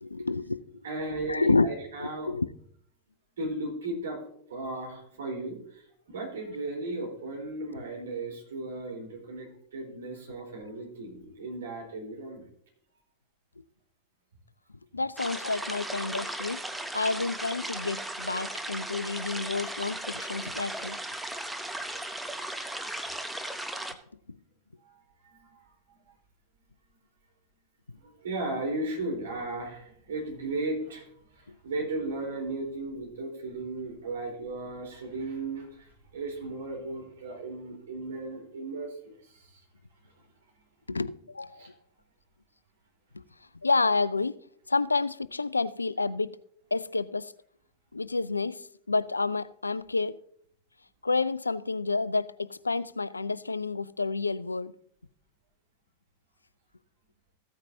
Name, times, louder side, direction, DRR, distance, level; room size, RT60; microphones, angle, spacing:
voice 1, 0.0-0.7 1.3-1.7 2.0-2.5 14.9-16.6 16.9-21.0 40.9-41.7 43.1-43.2 43.6-44.4 44.7-46.4 46.7-47.3 47.9-50.1 51.0-54.7, left 3 dB, 80° left, 0.3 m, -29 dB
voice 2, 0.8-2.3 3.4-12.4 21.4-21.5 22.6-22.9 24.8-26.1 28.0-39.6 41.5-41.7, right 2 dB, 65° right, 3.9 m, -36 dB
sound 1, 15.2-23.9, right 1 dB, 5° right, 0.8 m, -36 dB
15.0 x 8.9 x 2.7 m
figure-of-eight pair, 90°, 0 cm